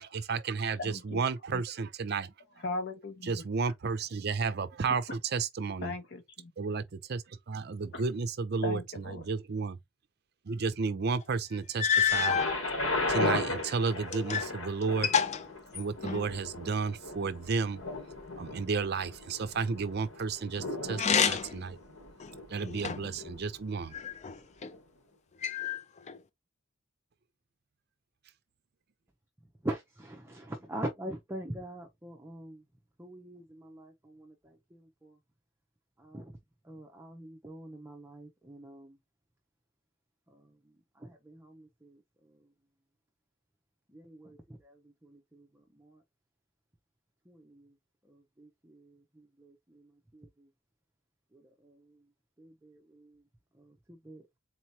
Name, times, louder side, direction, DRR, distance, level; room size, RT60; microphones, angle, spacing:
voice 1, 0.0-2.3 3.2-5.9 6.6-9.8 10.4-12.4 13.1-15.1 15.7-17.8 18.4-21.8 22.5-23.9, right 4 dB, 55° right, 0.5 m, -32 dB
voice 2, 0.8-1.2 1.5-1.6 2.6-3.4 5.8-6.5 7.9-8.0 8.6-9.2, left 2 dB, 55° left, 1.0 m, -38 dB
sound 1, 11.2-11.3 11.8-12.6 13.3-14.5 14.8-16.3 20.9-21.7 22.2-23.2 23.9-24.7 25.4-26.2, left 7 dB, 35° left, 0.4 m, -29 dB
Thunder, 12.1-24.0 24.7-24.8, left 2 dB, 75° left, 2.2 m, -36 dB
voice 3, 29.6-32.6 33.0-35.2 36.0-36.3 36.6-39.0 40.3-40.6 41.0-42.4 43.9-46.0 47.3-47.7 48.1-50.5 51.3-52.0 52.4-53.2 53.6-54.3, right 1 dB, 10° right, 0.8 m, -44 dB
4.1 x 3.0 x 2.8 m
head